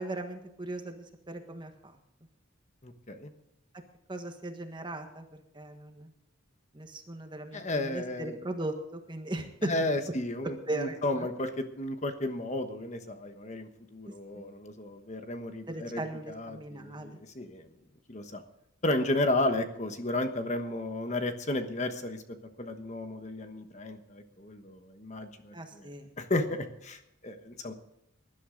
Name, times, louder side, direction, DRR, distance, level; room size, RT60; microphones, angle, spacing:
voice 1, 0.0-1.7 4.1-6.1 6.7-9.7 10.7-11.3 14.0-14.4 15.7-17.2 25.5-26.1, right 1 dB, 20° right, 5 dB, 1.5 m, -38 dB
voice 2, 2.8-3.3 7.5-8.4 9.6-17.7 18.1-18.4 18.8-22.2 22.6-25.9 26.2-27.7, left 2 dB, 35° left, 7 dB, 1.2 m, -33 dB
19.5 x 11.5 x 3.9 m, 0.79 s
head